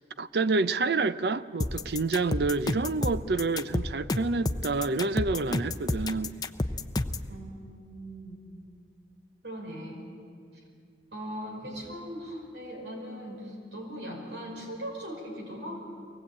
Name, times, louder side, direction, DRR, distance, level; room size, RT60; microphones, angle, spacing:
voice 1, 0.2-6.4, right 3 dB, 60° right, 0.6 m, -28 dB
sound 1, 1.6-7.3, left 2 dB, 20° left, 0.5 m, -30 dB
voice 2, 7.3-8.4 9.4-10.1 10.5-10.6 11.1-15.8, equal, 80° right, 5.4 m, -39 dB
23.5 x 18.0 x 8.5 m
head